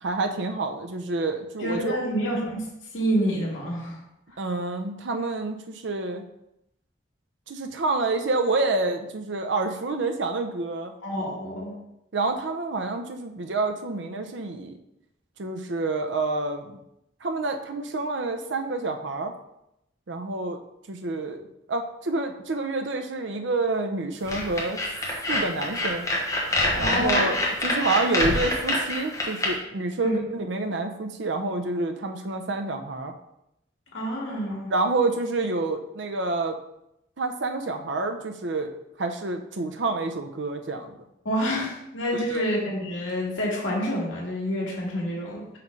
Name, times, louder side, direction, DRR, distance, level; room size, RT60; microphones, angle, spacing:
voice 1, 0.0-2.0 4.4-6.2 7.5-10.9 12.1-14.8 15.4-16.8 17.2-19.3 20.1-20.6 20.9-24.8 25.3-26.1 26.8-33.1 34.7-36.6 37.2-38.7 39.0-40.9 42.3-42.4, right 3 dB, 70° right, 5 dB, 0.6 m, -28 dB
voice 2, 1.6-2.7 2.9-4.0 11.0-11.7 26.8-27.2 30.0-30.2 33.9-34.7 41.3-45.6, equal, 85° left, -2 dB, 1.8 m, -28 dB
sound 1, 24.3-29.5, left 1 dB, 15° left, 1.1 m, -25 dB
5.8 x 3.2 x 5.2 m, 0.83 s
head